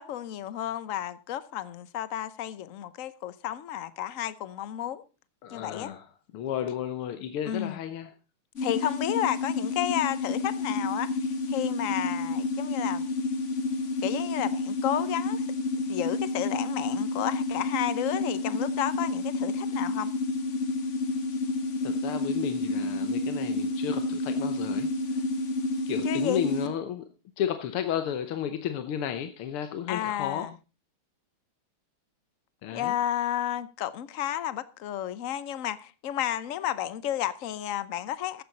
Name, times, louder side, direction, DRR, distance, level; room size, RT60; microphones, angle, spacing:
voice 1, 0.0-5.0 5.5-5.9 7.4-7.8 8.6-13.0 14.0-15.5 15.9-20.1 26.0-26.4 29.9-30.5 32.7-38.4, left 11 dB, 60° left, 0.9 m, -32 dB
voice 2, 5.4-6.1 6.3-8.1 21.8-25.2 25.9-27.0 27.4-30.5 32.6-32.9, left 9 dB, 85° left, 1.9 m, -33 dB
sound 1, 8.6-26.7, left 3 dB, 40° left, 1.4 m, -30 dB
14.0 x 10.5 x 4.1 m
omnidirectional pair, 2.4 m